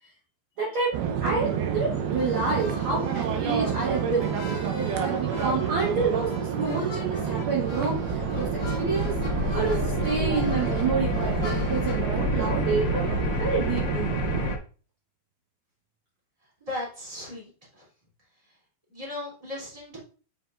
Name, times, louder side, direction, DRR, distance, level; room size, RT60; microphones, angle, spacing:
voice 1, 0.6-9.1 9.5-13.0 13.4-14.2, right 4 dB, 60° right, -5 dB, 1.3 m, -29 dB
sound 1, 0.9-14.6, right 8 dB, 85° right, 2.7 m, -29 dB
sound 2, 2.2-12.1, equal, 55° left, 1.7 m, -40 dB
sound 3, 6.7-14.6, left 6 dB, 75° left, 2.5 m, -31 dB
voice 2, 16.6-17.9 18.4-18.5 18.9-20.0, left 2 dB, 10° right, -6 dB, 2.4 m, -37 dB
7.3 x 5.3 x 2.4 m, 0.38 s
omnidirectional pair, 4.3 m